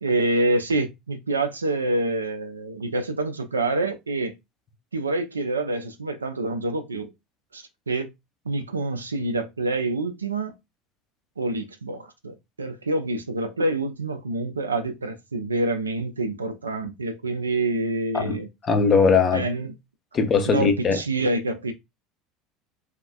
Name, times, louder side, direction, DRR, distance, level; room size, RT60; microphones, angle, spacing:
voice 1, 0.0-4.4 4.9-7.1 7.5-8.1 8.5-10.5 11.4-18.5 19.3-19.7 20.5-21.7, right 2 dB, 80° right, 0.3 m, -27 dB
voice 2, 18.6-19.4 20.1-21.0, left 5 dB, 35° left, 0.6 m, -20 dB
3.4 x 2.3 x 2.2 m
figure-of-eight pair, 70°, 0 cm